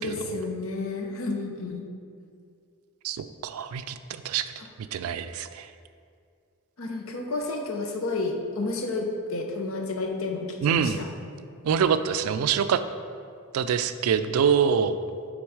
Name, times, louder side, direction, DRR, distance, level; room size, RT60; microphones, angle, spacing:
voice 1, 0.0-1.9 6.8-11.1, left 3 dB, 65° left, 3 dB, 0.7 m, -31 dB
voice 2, 3.0-4.5 4.9-5.7 10.6-11.0 11.6-12.8 13.5-15.0, right 7 dB, 75° right, 11 dB, 0.3 m, -25 dB
6.2 x 3.8 x 4.8 m, 2.3 s
head